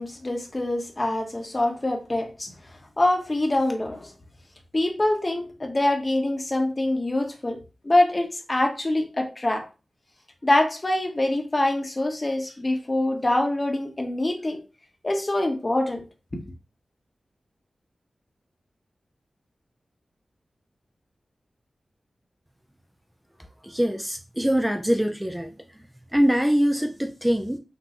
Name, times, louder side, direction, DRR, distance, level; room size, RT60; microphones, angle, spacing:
voice 1, 0.0-2.5 3.0-4.1 4.7-7.6 7.8-9.6 10.4-14.6 15.0-16.0 16.3-16.4, left 1 dB, 30° left, 1.0 m, -24 dB
voice 2, 23.6-25.5 26.1-27.6, equal, 10° right, 0.4 m, -23 dB
6.1 x 2.2 x 2.9 m
wide cardioid pair, 70°, 0 cm